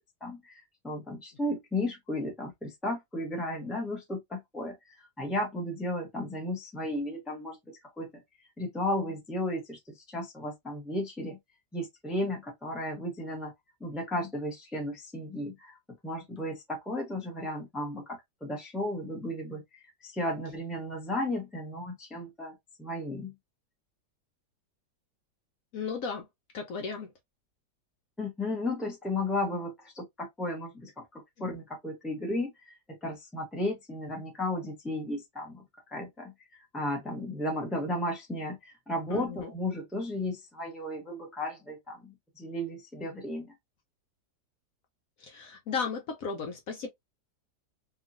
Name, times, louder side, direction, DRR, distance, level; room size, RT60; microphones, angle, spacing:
voice 1, 0.2-4.8 5.2-8.2 8.6-11.4 11.7-13.5 13.8-15.8 16.0-23.3 28.2-43.5, left 1 dB, ahead, 0.6 m, -34 dB
voice 2, 25.7-26.3 26.5-27.1 39.1-39.5 45.2-46.9, left 5 dB, 65° left, 1.0 m, -35 dB
2.9 x 2.4 x 2.5 m
omnidirectional pair, 1.8 m